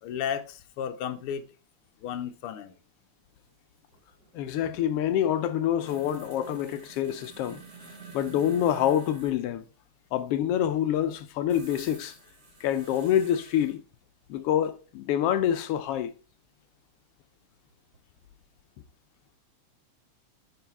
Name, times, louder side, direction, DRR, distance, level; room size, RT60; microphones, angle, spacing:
voice 1, 0.0-1.4 2.0-2.7, left 8 dB, 65° left, 1.4 m, -33 dB
sound 1, 3.4-3.5 3.8-9.4 11.5-13.8 15.9-16.0 17.6-18.3 18.5-18.6, right 4 dB, 35° right, 2.9 m, -50 dB
voice 2, 4.3-7.6 8.1-9.6 10.1-12.2 12.6-13.8 14.3-16.1, left 10 dB, 85° left, 1.3 m, -26 dB
10.0 x 4.9 x 4.6 m
omnidirectional pair, 3.3 m